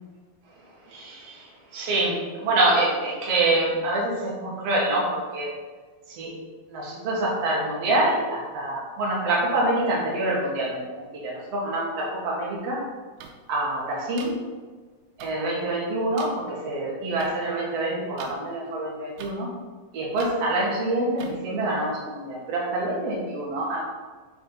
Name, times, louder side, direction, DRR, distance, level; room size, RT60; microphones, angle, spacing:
voice 1, 0.9-5.5 6.1-6.4 6.7-12.8 13.5-14.4 15.2-19.5 19.9-23.8, right 2 dB, 55° right, -4 dB, 2.4 m, -26 dB
sound 1, 13.2-13.3 14.2-14.3 15.2-15.3 16.2-16.3 17.2-17.3 18.2-18.3 19.2-19.3 20.2-20.3 21.2-21.3, right 7 dB, 85° right, 2.4 m, -41 dB
10.0 x 3.9 x 3.9 m, 1.4 s
omnidirectional pair, 3.8 m